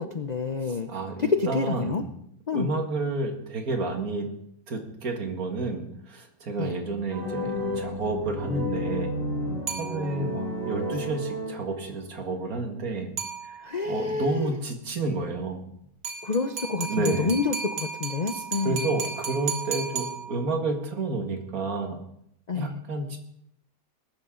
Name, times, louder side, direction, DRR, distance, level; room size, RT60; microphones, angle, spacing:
voice 1, 0.0-0.9 1.2-2.0 2.5-2.7 6.6-6.7 13.6-14.6 16.2-18.9 22.5-22.8, left 4 dB, 60° left, 8 dB, 0.4 m, -28 dB
voice 2, 0.9-2.1 2.5-4.3 4.7-9.2 9.8-13.1 13.4-13.6 13.9-15.7 16.9-17.4 18.3-22.0 22.5-23.2, right 3 dB, 60° right, 4 dB, 2.3 m, -30 dB
sound 1, 7.1-12.0, equal, 35° right, 4.8 m, -32 dB
sound 2, 9.7-10.4 13.2-13.9 16.0-20.7, right 5 dB, 85° right, 2.7 m, -35 dB
20.0 x 11.0 x 3.8 m, 0.74 s
omnidirectional pair, 1.7 m